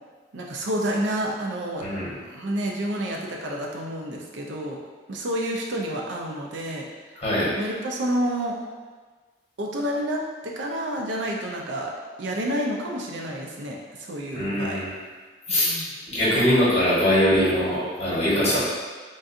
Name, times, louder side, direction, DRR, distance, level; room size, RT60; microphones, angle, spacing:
voice 1, 0.3-1.9 2.2-4.8 5.1-6.8 7.5-8.6 9.6-11.9 12.2-14.8 15.5-16.0, right 1 dB, 80° right, -1 dB, 0.5 m, -29 dB
voice 2, 1.8-2.1 7.2-7.5 14.3-14.9 15.5-15.7 16.1-18.6, equal, 35° left, -9 dB, 1.3 m, -22 dB
3.8 x 2.4 x 2.6 m, 1.4 s
head